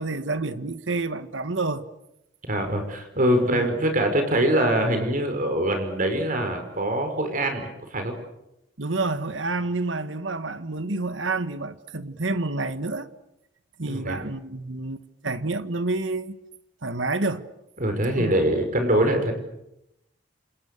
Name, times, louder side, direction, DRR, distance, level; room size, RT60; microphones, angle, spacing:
voice 1, 0.0-1.9 3.4-3.7 8.8-13.1 13.8-16.4 16.8-17.5 18.2-18.3, right 3 dB, 85° right, 1.7 m, -29 dB
voice 2, 2.5-8.1 13.9-14.2 17.8-19.3, right 1 dB, 45° right, 5.2 m, -23 dB
30.0 x 27.5 x 6.8 m
head